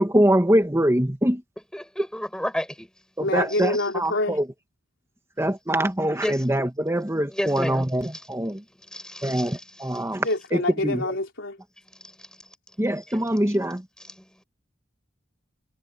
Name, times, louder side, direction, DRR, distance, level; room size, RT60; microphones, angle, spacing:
voice 1, 0.0-1.4 3.2-4.5 5.4-8.6 9.2-11.1 12.8-13.9, right 1 dB, 15° right, 1.8 m, -23 dB
voice 2, 1.7-2.9 3.5-3.6 6.2-6.4 7.3-7.9 8.9-9.6 12.0-12.3 14.1-14.3, equal, 5° left, 7.6 m, -31 dB
voice 3, 3.2-4.4 10.2-11.6, left 2 dB, 80° left, 3.9 m, -26 dB
head